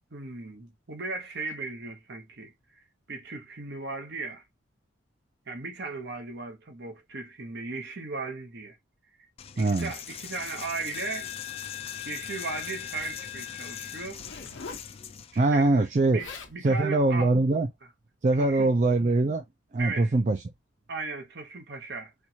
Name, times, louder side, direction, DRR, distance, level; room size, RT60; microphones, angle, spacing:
voice 1, 0.1-2.5 3.1-4.4 5.5-8.8 9.6-11.3 12.0-14.2 15.3-17.3 18.3-18.7 19.8-20.1 20.9-22.1, right 3 dB, 55° right, 0.9 m, -37 dB
Coin (dropping), 9.4-15.4, left 10 dB, 30° left, 0.3 m, -40 dB
voice 2, 9.6-9.9 15.4-16.2 16.6-17.7 18.2-19.4 19.7-20.4, right 2 dB, 35° right, 0.4 m, -22 dB
Zipper (clothing), 14.0-14.9 15.9-16.0 16.2-16.6 17.3-17.5, left 4 dB, 65° left, 0.9 m, -42 dB
4.4 x 2.4 x 2.8 m
head